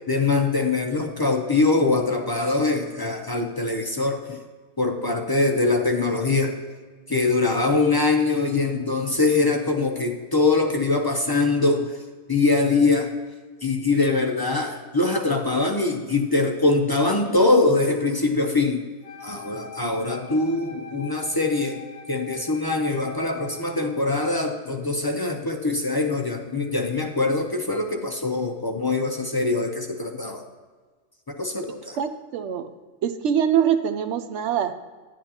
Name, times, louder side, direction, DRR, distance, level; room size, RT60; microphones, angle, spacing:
voice 1, 0.1-4.4 4.8-6.6 7.1-12.0 12.3-13.1 13.6-18.8 19.2-30.4 31.3-32.0, left 3 dB, 30° left, 2 dB, 0.4 m, -23 dB
Wind instrument woodwind instrument, 19.0-23.9, left 4 dB, 45° left, 1.1 m, -42 dB
voice 2, 32.0-32.7 33.0-34.7, right 8 dB, 75° right, 9 dB, 0.9 m, -23 dB
10.0 x 9.5 x 2.9 m, 1.5 s
omnidirectional pair, 1.2 m